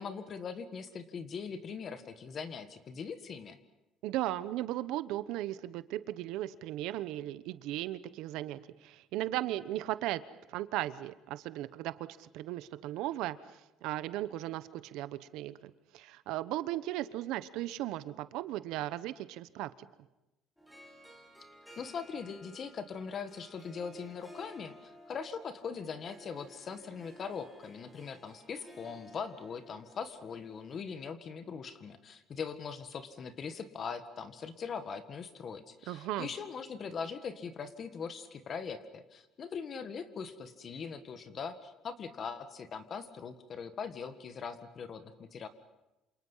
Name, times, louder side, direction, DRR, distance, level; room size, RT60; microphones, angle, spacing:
voice 1, 0.0-3.6 21.8-45.5, left 6 dB, 35° left, 10 dB, 1.8 m, -41 dB
voice 2, 4.0-10.2 10.5-19.7 35.9-36.3, right 14 dB, 75° right, 14 dB, 1.0 m, -37 dB
Harp, 20.6-30.9, equal, 5° left, 3.4 m, -55 dB
28.0 x 27.5 x 5.7 m, 0.99 s
cardioid pair, 155°, 0 cm